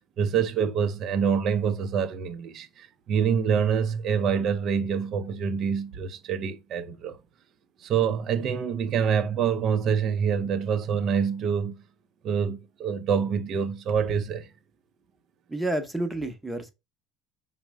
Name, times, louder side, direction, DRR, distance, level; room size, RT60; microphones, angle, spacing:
voice 1, 0.2-7.2 7.8-11.7 12.2-14.5, right 7 dB, 45° right, 0.5 m, -26 dB
voice 2, 15.5-16.7, right 1 dB, 5° right, 0.7 m, -29 dB
5.3 x 2.0 x 4.5 m
cardioid pair, 135°, 0 cm